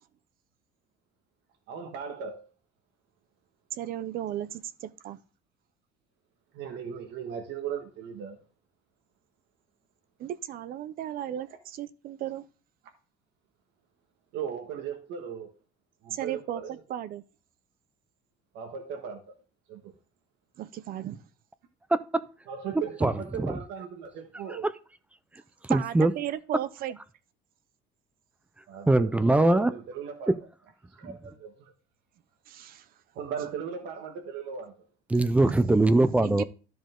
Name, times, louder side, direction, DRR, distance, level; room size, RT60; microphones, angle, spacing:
voice 1, 1.7-2.5 6.5-8.4 14.3-15.5 16.0-16.8 18.5-19.3 19.7-19.9 22.5-24.7 28.7-30.3 31.0-31.5 33.1-34.7, right 7 dB, 75° right, 1.5 m, -37 dB
voice 2, 3.7-5.2 10.2-12.4 16.1-17.2 20.6-21.3 25.7-27.0 32.5-32.9 36.2-36.4, right 11 dB, 50° right, 0.6 m, -35 dB
voice 3, 25.7-26.1 28.9-29.7 35.1-36.4, right 2 dB, 5° right, 0.4 m, -21 dB
13.0 x 5.2 x 3.7 m
cardioid pair, 160°, 19 cm